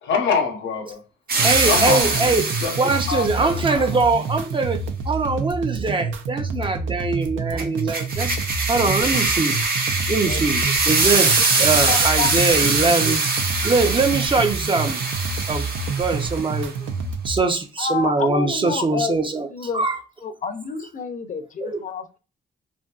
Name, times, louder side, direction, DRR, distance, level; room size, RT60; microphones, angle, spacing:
voice 1, 0.0-1.0 1.7-2.4 2.6-2.8 3.1-3.9, left 5 dB, 70° left, 0.8 m, -25 dB
sound 1, 1.3-3.6 7.6-16.5, right 3 dB, 50° right, 0.9 m, -23 dB
voice 2, 1.4-2.5 2.8-4.8 5.1-8.4 8.7-9.6 10.1-13.2 13.6-15.0 15.5-15.7 16.0-16.7 17.2-19.5 19.7-20.0 21.6-21.8, right 3 dB, 25° right, 0.5 m, -22 dB
sound 2, 1.4-17.4, right 4 dB, 75° right, 0.5 m, -28 dB
voice 3, 11.6-13.2 17.8-19.2 19.5-19.8 20.2-22.2, left 6 dB, 40° left, 0.6 m, -29 dB
2.6 x 2.6 x 2.3 m
cardioid pair, 90°, 20 cm